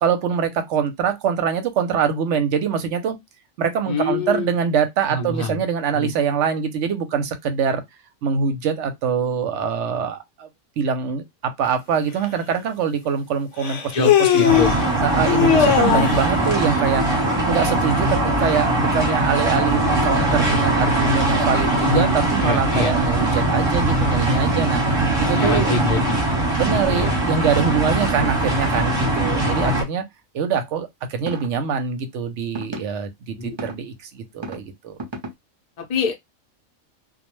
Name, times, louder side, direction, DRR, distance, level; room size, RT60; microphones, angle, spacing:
voice 1, 0.0-3.2 3.6-7.8 8.2-10.5 10.8-14.6 15.0-17.0 17.5-24.8 25.2-25.7 26.6-30.0 30.3-35.0, right 6 dB, 70° right, 0.8 m, -24 dB
voice 2, 3.9-4.6 5.1-5.6 5.9-6.1 13.9-14.8 21.8-22.9 25.3-26.1 26.7-27.3 33.4-33.6 35.8-36.1, left 3 dB, 45° left, 0.5 m, -25 dB
Human voice, 12.2-12.3 13.6-14.8 15.3-16.3, left 10 dB, 65° left, 0.9 m, -18 dB
sound 1, 14.5-29.8, right 2 dB, 25° right, 0.9 m, -21 dB
sound 2, 31.3-31.5 32.6-32.8 33.6-33.8 34.4-34.6 35.0-35.3, right 1 dB, 40° right, 0.4 m, -31 dB
2.3 x 2.1 x 3.0 m
omnidirectional pair, 1.4 m